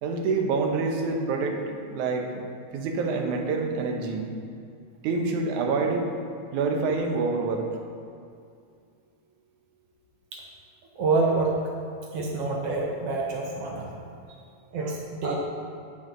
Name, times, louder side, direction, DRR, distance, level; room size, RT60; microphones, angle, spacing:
voice 1, 0.0-2.4 2.7-4.3 5.0-6.1 6.5-7.7, right 4 dB, 85° right, 3 dB, 2.4 m, -27 dB
voice 2, 11.0-11.6 12.1-13.9 14.7-15.4, right 3 dB, 65° right, -1 dB, 1.8 m, -27 dB
10.0 x 9.0 x 3.8 m, 2.4 s
omnidirectional pair, 3.4 m